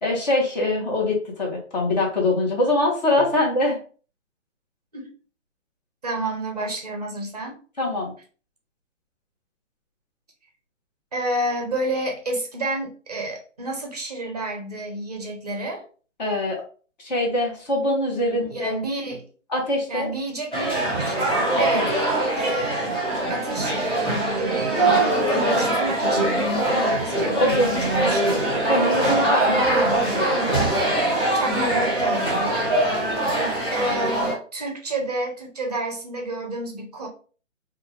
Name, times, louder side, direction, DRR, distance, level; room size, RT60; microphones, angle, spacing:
voice 1, 0.0-3.8 7.8-8.1 16.2-16.6 17.0-18.8 19.5-20.1 21.6-21.9 27.3-27.8 28.6-29.6, left 1 dB, 35° left, -1 dB, 0.9 m, -23 dB
voice 2, 6.0-7.6 11.1-15.8 18.1-19.2 19.9-21.9 22.4-23.0 23.3-24.1 24.4-27.7 28.0-28.5 29.7-30.0 31.3-32.6 33.7-37.1, right 2 dB, 30° right, 1 dB, 0.5 m, -30 dB
sound 1, 20.5-34.3, right 1 dB, 10° left, 1.3 m, -22 dB
2.4 x 2.3 x 3.1 m, 0.39 s
hypercardioid pair, 160°, 39 cm